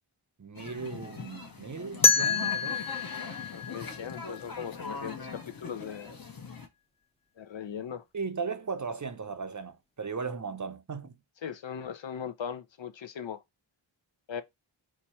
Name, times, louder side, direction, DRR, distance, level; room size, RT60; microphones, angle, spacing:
voice 1, 0.4-2.8 8.1-11.2, right 5 dB, 35° right, 0.6 m, -37 dB
sound 1, 0.5-6.7, left 4 dB, 45° left, 1.0 m, -41 dB
sound 2, 2.0-4.9, left 5 dB, 10° left, 0.7 m, -28 dB
voice 2, 3.5-6.1 7.4-8.0 11.4-13.4 14.3-14.4, left 8 dB, 65° left, 0.7 m, -39 dB
4.5 x 2.3 x 4.1 m
wide cardioid pair, 50°, 50 cm